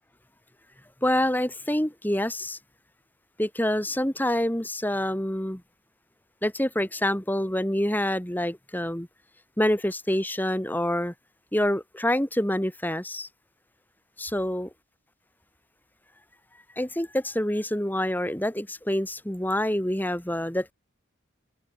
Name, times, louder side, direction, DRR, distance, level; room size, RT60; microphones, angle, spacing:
voice 1, 1.0-2.6 3.4-5.6 6.4-9.1 9.6-11.1 11.5-13.3 14.2-14.7 16.8-20.7, left 1 dB, 10° left, 1.7 m, -26 dB
head